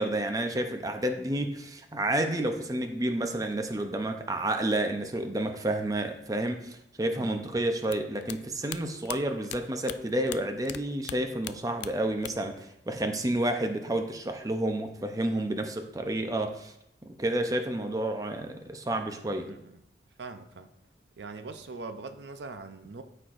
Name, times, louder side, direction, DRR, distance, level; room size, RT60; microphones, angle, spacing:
voice 1, 0.0-16.7 17.0-19.5, right 1 dB, 20° right, 6 dB, 0.6 m, -30 dB
voice 2, 7.1-7.5 19.5-19.8 20.2-20.7 21.2-23.0, right 3 dB, 80° right, 8 dB, 0.6 m, -42 dB
sound 1, 7.8-10.8 11.0-12.6 12.8-13.6, left 12 dB, 75° left, 0.3 m, -40 dB
13.0 x 4.4 x 2.5 m, 0.80 s
head